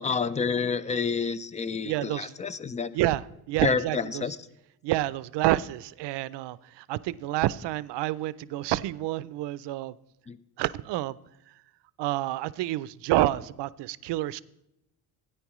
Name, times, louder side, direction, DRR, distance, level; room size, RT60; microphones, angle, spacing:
voice 1, 0.0-2.9 3.6-4.4 10.3-10.4, left 5 dB, 20° left, 0.3 m, -29 dB
voice 2, 1.8-2.4 2.9-4.3 4.8-9.9 10.6-11.2 12.0-14.4, right 15 dB, 85° right, 0.5 m, -28 dB
16.5 x 9.8 x 3.1 m
cardioid pair, 140°, 41 cm